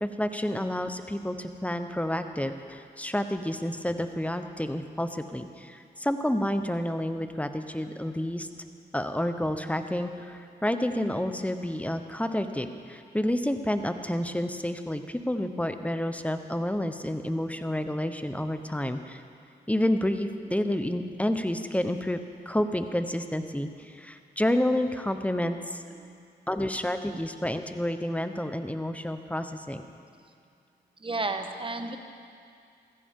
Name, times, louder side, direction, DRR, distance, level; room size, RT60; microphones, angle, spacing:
voice 1, 0.0-8.5 8.9-19.2 19.7-22.2 22.5-25.8 26.5-29.8, left 1 dB, 10° left, 8 dB, 1.0 m, -29 dB
voice 2, 25.9-26.2 27.1-27.2 31.0-32.0, right 3 dB, 30° right, 6 dB, 1.2 m, -34 dB
15.5 x 14.5 x 3.8 m, 2.4 s
cardioid pair, 45°, 18 cm